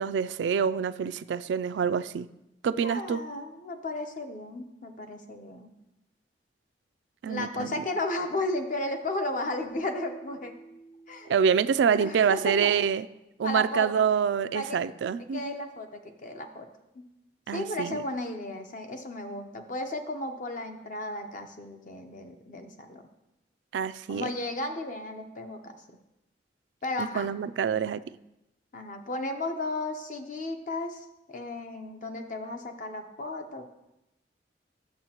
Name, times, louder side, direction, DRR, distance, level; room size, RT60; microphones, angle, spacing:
voice 1, 0.0-2.3 2.6-3.2 7.2-7.7 11.3-13.1 13.4-15.5 17.5-18.0 23.7-24.3 27.0-28.0, right 7 dB, 85° right, 14 dB, 0.3 m, -26 dB
voice 2, 2.8-5.7 7.3-10.6 11.1-11.3 12.0-12.8 13.4-14.1 14.5-14.8 15.3-16.7 16.9-17.0 17.5-23.0 24.1-25.8 26.8-27.3 28.7-33.7, left 2 dB, 45° left, 5 dB, 0.8 m, -34 dB
Keyboard (musical), 9.6-12.4, right 3 dB, 90° left, 1.5 m, -50 dB
10.5 x 7.1 x 2.9 m, 0.91 s
head